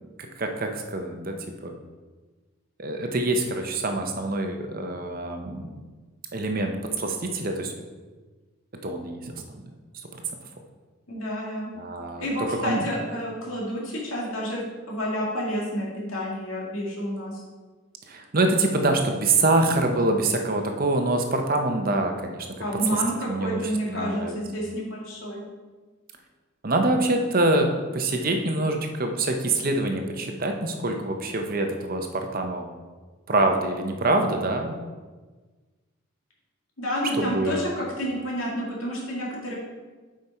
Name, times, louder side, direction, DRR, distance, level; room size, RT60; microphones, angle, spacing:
voice 1, 0.4-1.4 1.6-1.7 2.8-5.7 6.3-7.7 8.8-9.6 9.9-10.1 11.8-12.9 18.1-22.5 23.3-24.4 26.6-32.7 33.3-34.7 37.1-37.6, right 2 dB, 45° right, 4 dB, 0.8 m, -25 dB
voice 2, 11.1-11.7 12.2-17.4 22.6-25.4 36.8-39.5, equal, 75° left, -3 dB, 2.3 m, -29 dB
8.1 x 5.2 x 4.3 m, 1.3 s
head